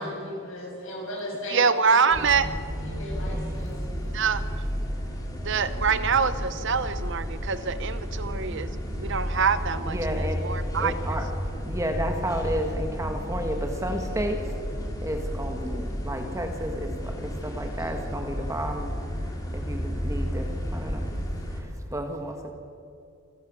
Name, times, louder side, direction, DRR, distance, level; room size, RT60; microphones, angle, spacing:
voice 1, 0.0-2.1 2.8-3.7, left 1 dB, 65° left, -2 dB, 7.3 m, -36 dB
voice 2, 1.5-2.5 4.1-4.4 5.4-8.7 9.0-10.0 10.4-10.9, right 6 dB, 55° right, 13 dB, 0.8 m, -24 dB
sound 1, 2.1-21.6, equal, 15° left, 2.6 m, -32 dB
voice 3, 9.8-10.4 10.8-11.2 11.7-14.4 15.0-16.9 17.2-18.9 19.5-20.5 20.7-21.0 21.9-22.5, equal, 15° right, 4 dB, 1.6 m, -31 dB
26.5 x 16.0 x 6.3 m, 2.5 s
head